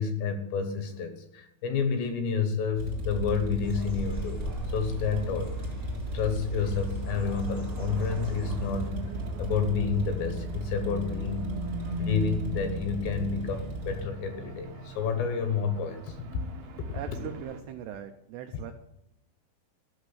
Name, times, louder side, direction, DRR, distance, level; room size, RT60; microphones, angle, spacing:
voice 1, 0.0-5.6 6.1-9.0 9.4-11.5 12.0-16.2, left 6 dB, 70° left, 8 dB, 2.9 m, -30 dB
sound 1, 2.8-14.1, right 1 dB, 35° right, 1.4 m, -35 dB
sound 2, 3.6-8.9, right 2 dB, 15° right, 0.6 m, -40 dB
sound 3, 7.8-17.6, right 2 dB, 65° right, 2.6 m, -39 dB
voice 2, 16.9-18.7, right 9 dB, 85° right, 7 dB, 2.3 m, -40 dB
13.5 x 6.2 x 8.2 m, 0.82 s
omnidirectional pair, 5.7 m